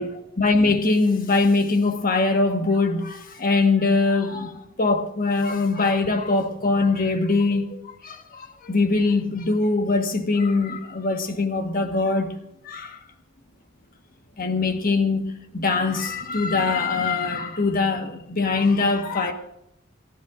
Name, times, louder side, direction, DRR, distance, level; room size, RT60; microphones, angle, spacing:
voice 1, 0.4-12.3 12.6-13.0 14.4-19.3, left 3 dB, 50° left, 1.5 m, -22 dB
28.0 x 12.0 x 2.6 m
head